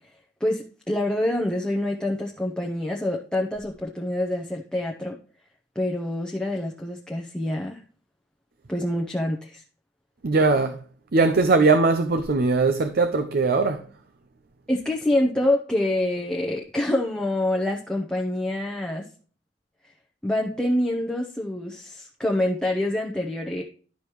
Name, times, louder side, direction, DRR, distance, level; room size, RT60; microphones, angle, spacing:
voice 1, 0.4-5.2 5.7-7.8 8.7-9.6 14.7-19.0 20.2-23.6, left 1 dB, 5° left, 0.8 m, -26 dB
voice 2, 10.2-10.8 11.1-13.8, right 3 dB, 55° right, 0.6 m, -20 dB
11.5 x 5.2 x 3.0 m
head